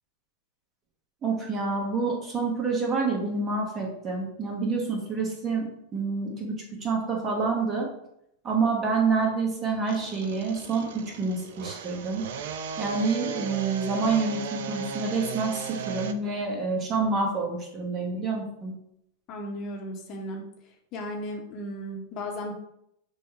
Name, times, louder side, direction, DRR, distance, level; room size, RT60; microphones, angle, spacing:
voice 1, 1.2-5.7 5.9-7.9 8.4-12.2 12.8-18.7, right 4 dB, 25° right, 0 dB, 1.1 m, -28 dB
sound 1, 9.9-16.1, right 7 dB, 55° right, 0.3 m, -36 dB
voice 2, 19.3-20.4 20.9-22.5, equal, 35° left, 2 dB, 0.7 m, -35 dB
6.0 x 2.2 x 3.1 m, 0.77 s
figure-of-eight pair, 90°, 0 cm